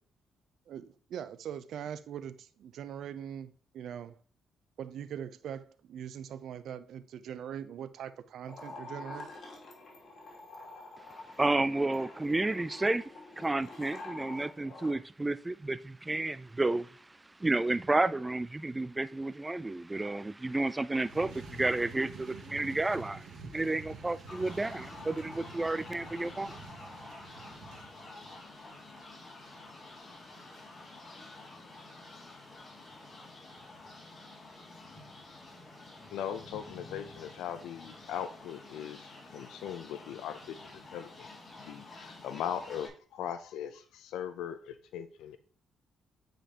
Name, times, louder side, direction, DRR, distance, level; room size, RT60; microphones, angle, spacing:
voice 1, 0.7-4.2 4.8-9.3, right 9 dB, 70° right, 0.5 m, -42 dB
sound 1, 8.4-15.0, left 2 dB, 55° left, 2.6 m, -47 dB
voice 2, 11.4-13.1 13.4-17.1 17.4-26.6, right 2 dB, 15° right, 0.3 m, -31 dB
sound 2, 21.0-28.4, right 4 dB, 90° right, 1.8 m, -48 dB
sound 3, 24.3-42.9, left 2 dB, 35° left, 3.8 m, -49 dB
voice 3, 36.1-40.6 40.9-41.3 41.6-45.4, left 9 dB, 85° left, 0.5 m, -39 dB
8.9 x 5.1 x 2.9 m
cardioid pair, 90°, 0 cm